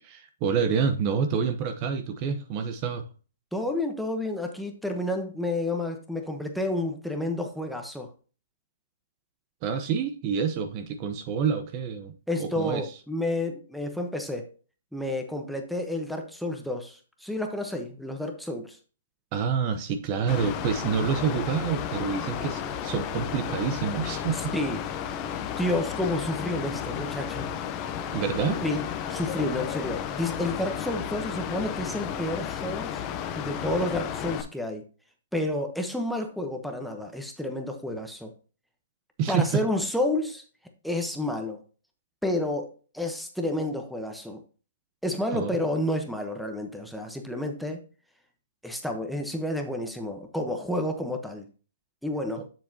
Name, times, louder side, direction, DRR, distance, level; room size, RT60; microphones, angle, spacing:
voice 1, 0.0-3.0 9.6-12.9 19.3-24.5 28.1-28.6 39.2-39.6 45.3-45.6 52.4-52.5, right 6 dB, 30° right, 0.8 m, -28 dB
voice 2, 3.5-8.1 12.3-14.5 14.9-18.8 24.3-24.8 25.6-27.5 28.6-33.0 33.3-34.8 35.3-38.3 39.3-40.4 40.8-41.6 42.2-44.4 45.0-47.8 48.6-51.4 52.0-52.4, left 1 dB, ahead, 1.0 m, -30 dB
Mechanical fan, 20.3-34.4, left 9 dB, 25° left, 0.8 m, -33 dB
7.4 x 7.3 x 2.8 m
hypercardioid pair, 150°, 0 cm